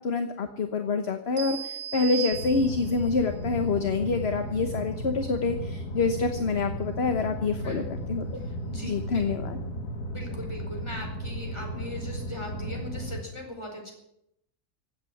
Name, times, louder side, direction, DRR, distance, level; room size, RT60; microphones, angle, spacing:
voice 1, 0.0-7.8 8.1-8.4 8.8-9.6, left 4 dB, 45° left, 7 dB, 1.3 m, -27 dB
sound 1, 1.4-3.1, right 10 dB, 90° right, 2.0 m, -36 dB
sound 2, 2.3-13.2, equal, 85° left, 2.1 m, -35 dB
voice 2, 8.3-9.3 10.1-13.9, left 1 dB, 15° left, 1 dB, 4.7 m, -40 dB
16.0 x 8.8 x 9.9 m, 0.79 s
omnidirectional pair, 1.6 m